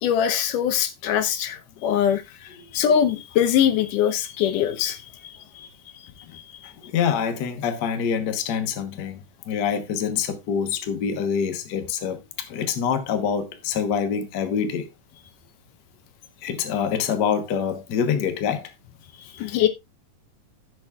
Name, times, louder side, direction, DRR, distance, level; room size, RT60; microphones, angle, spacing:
voice 1, 0.0-2.2 2.7-5.7 6.3-6.7 19.3-19.7, left 9 dB, 85° left, 2.5 m, -23 dB
voice 2, 6.6-14.9 16.4-18.7 19.4-19.5, left 7 dB, 65° left, 1.0 m, -26 dB
16.5 x 6.1 x 2.4 m
omnidirectional pair, 3.6 m